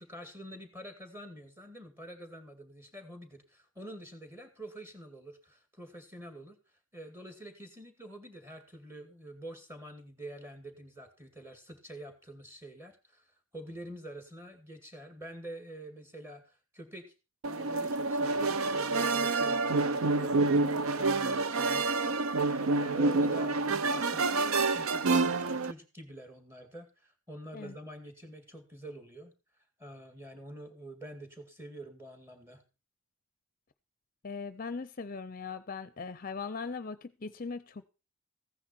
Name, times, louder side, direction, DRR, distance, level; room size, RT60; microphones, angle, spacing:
voice 1, 0.0-6.6 6.9-17.1 17.4-29.3 29.8-32.6, right 1 dB, 10° right, 6 dB, 2.1 m, -47 dB
sound 1, 17.4-25.7, right 3 dB, 75° right, 0.6 m, -28 dB
voice 2, 34.2-37.9, left 4 dB, 40° left, 13 dB, 0.6 m, -39 dB
15.0 x 9.9 x 4.4 m, 0.32 s
head